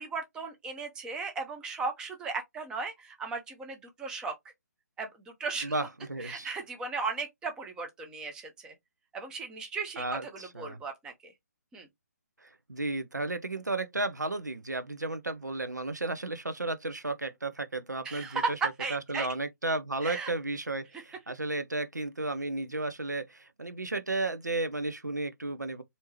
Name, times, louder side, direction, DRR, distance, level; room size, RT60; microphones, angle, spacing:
voice 1, 0.0-4.3 5.0-5.7 6.2-8.7 9.1-11.3 11.7-11.9 18.0-18.5 18.8-19.3 20.0-20.3, right 4 dB, 10° right, 0.6 m, -36 dB
voice 2, 5.6-6.5 10.0-10.8 12.7-18.4 18.9-25.8, right 2 dB, 75° right, 0.7 m, -33 dB
4.4 x 2.8 x 3.0 m
figure-of-eight pair, 140°, 9 cm